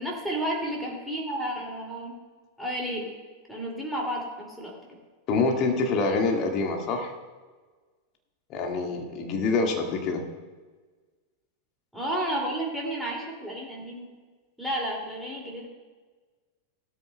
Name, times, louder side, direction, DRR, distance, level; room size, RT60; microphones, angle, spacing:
voice 1, 0.0-2.1 2.6-3.1 3.5-4.8 11.9-14.1 14.6-15.7, right 1 dB, ahead, -3 dB, 2.5 m, -31 dB
voice 2, 5.3-7.1 8.5-10.2, left 3 dB, 35° left, 2 dB, 1.9 m, -26 dB
16.5 x 13.0 x 2.3 m, 1.4 s
figure-of-eight pair, 90°, 0 cm